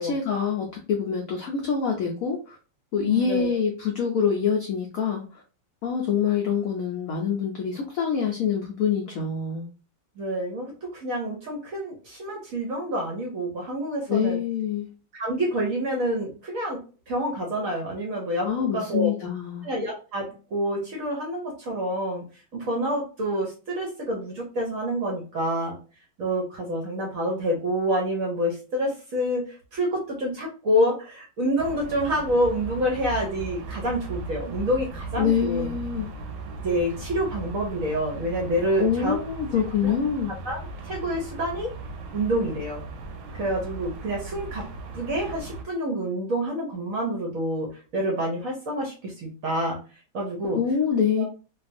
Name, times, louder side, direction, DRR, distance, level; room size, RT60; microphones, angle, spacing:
voice 1, 0.0-2.6 2.9-5.4 5.8-9.6 14.1-14.9 18.4-19.7 35.2-36.1 38.8-40.3 50.5-51.2, left 7 dB, 80° left, 0 dB, 0.7 m, -25 dB
voice 2, 3.0-3.6 10.2-14.4 15.1-16.8 17.1-18.5 18.7-19.1 19.6-22.2 22.5-25.8 26.2-35.7 36.6-39.2 39.8-39.9 40.4-41.7 42.1-42.8 43.3-44.6 44.9-49.8 50.1-50.6 51.2-51.3, equal, 60° right, -1 dB, 0.9 m, -27 dB
sound 1, 31.6-45.6, right 3 dB, 85° right, 1.5 m, -37 dB
3.3 x 2.3 x 2.5 m, 0.36 s
omnidirectional pair, 2.1 m